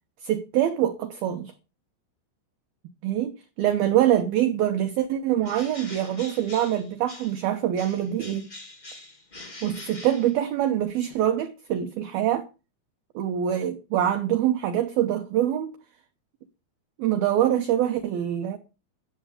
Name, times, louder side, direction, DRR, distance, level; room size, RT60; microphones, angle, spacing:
voice 1, 0.2-1.5 3.0-8.5 9.6-12.5 13.2-15.8 17.0-18.6, right 11 dB, 85° right, 2.1 m, -24 dB
Bird, 5.4-7.5 7.7-10.8, left 2 dB, 40° left, 0.6 m, -44 dB
13.5 x 7.6 x 6.8 m
omnidirectional pair, 5.7 m